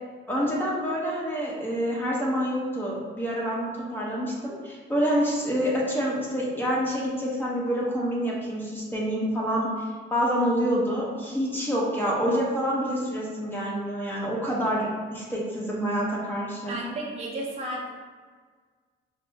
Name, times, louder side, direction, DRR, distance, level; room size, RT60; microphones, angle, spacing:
voice 1, 0.3-16.8, equal, 10° left, -5 dB, 0.9 m, -27 dB
voice 2, 16.7-18.0, right 1 dB, 30° right, -4 dB, 0.7 m, -33 dB
5.1 x 2.0 x 2.8 m, 1.5 s
cardioid pair, 90°, 20 cm